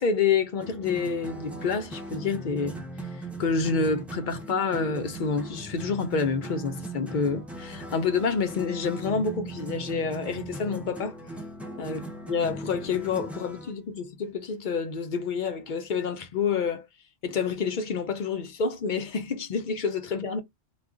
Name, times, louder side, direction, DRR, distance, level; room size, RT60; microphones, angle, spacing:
voice 1, 0.0-2.8 3.1-11.2 11.8-12.0 12.3-16.9 17.2-20.4, left 5 dB, 55° left, 0.6 m, -28 dB
sound 1, 0.6-13.7, right 1 dB, ahead, 0.4 m, -38 dB
2.4 x 2.2 x 3.5 m
omnidirectional pair, 1.2 m